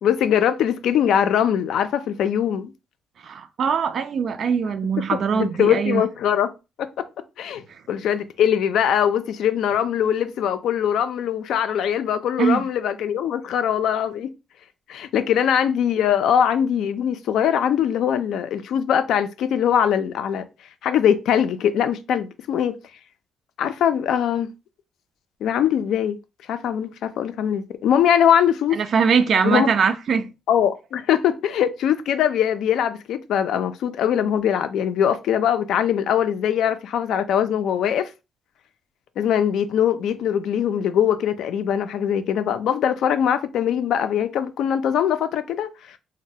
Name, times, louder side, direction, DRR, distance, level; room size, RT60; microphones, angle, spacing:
voice 1, 0.0-2.7 5.3-6.5 6.8-7.0 7.4-7.6 7.9-14.3 14.9-20.4 20.8-22.7 23.6-24.5 25.4-26.2 26.5-28.8 29.4-29.7 30.5-38.1 39.2-45.7, left 9 dB, 80° left, 0.3 m, -21 dB
voice 2, 3.2-6.0 7.7-7.8 12.4-12.7 28.7-30.3, right 6 dB, 60° right, 0.3 m, -21 dB
3.0 x 2.1 x 2.7 m
cardioid pair, 90°, 0 cm